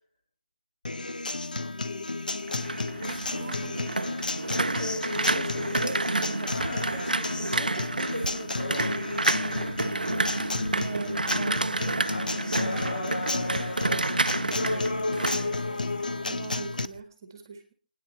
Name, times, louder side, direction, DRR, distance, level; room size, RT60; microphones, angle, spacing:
Acoustic guitar, 0.8-16.9, left 2 dB, 75° left, 1.0 m, -31 dB
sound 1, 2.3-16.3 16.6-17.0, right 2 dB, 80° right, 0.6 m, -30 dB
voice 1, 3.3-3.9 10.8-12.0 14.4-17.7, right 4 dB, 25° right, 6 dB, 1.8 m, -43 dB
voice 2, 4.8-8.8 12.9-13.2, left 1 dB, 25° left, 2 dB, 2.7 m, -38 dB
28.0 x 9.8 x 4.2 m, 0.40 s
figure-of-eight pair, 165°, 5 cm